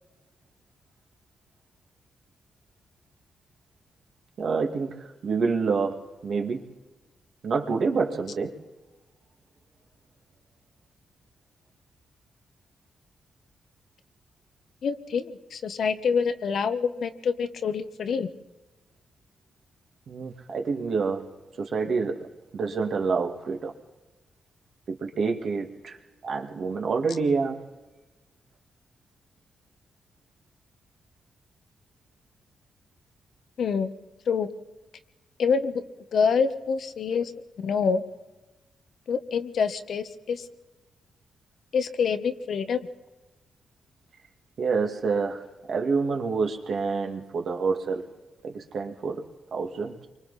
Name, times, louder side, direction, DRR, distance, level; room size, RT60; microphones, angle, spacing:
voice 1, 4.4-6.6 7.4-8.5 20.1-21.3 21.6-23.7 24.9-26.0 26.2-27.7 44.6-48.1 48.4-49.2 49.5-50.0, right 4 dB, 55° right, 3 dB, 2.2 m, -27 dB
voice 2, 14.8-18.3 33.6-33.9 34.3-34.5 35.4-35.8 36.1-37.3 37.6-38.0 39.1-40.5 41.7-42.8, left 6 dB, 60° left, 9 dB, 1.2 m, -26 dB
28.5 x 24.5 x 4.2 m, 1.1 s
wide cardioid pair, 135°, 0 cm